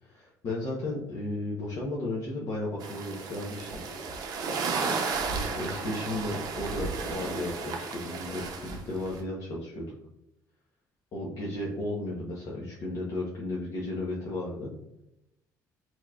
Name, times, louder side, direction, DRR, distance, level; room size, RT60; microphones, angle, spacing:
voice 1, 0.0-3.8 5.3-10.0 11.1-14.7, left 2 dB, 55° left, -4 dB, 0.9 m, -34 dB
sound 1, 2.8-9.2, right 4 dB, 65° right, 0.7 m, -33 dB
4.4 x 2.9 x 2.4 m, 0.85 s
cardioid pair, 100°, 7 cm